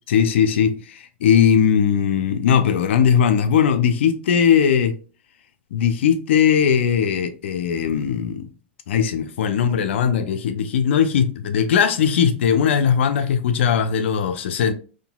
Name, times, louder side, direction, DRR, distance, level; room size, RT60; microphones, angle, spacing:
voice 1, 0.1-5.0 5.7-8.5 8.9-14.7, left 7 dB, 75° left, 0.5 m, -19 dB
3.7 x 2.5 x 2.2 m
hypercardioid pair, 140°, 6 cm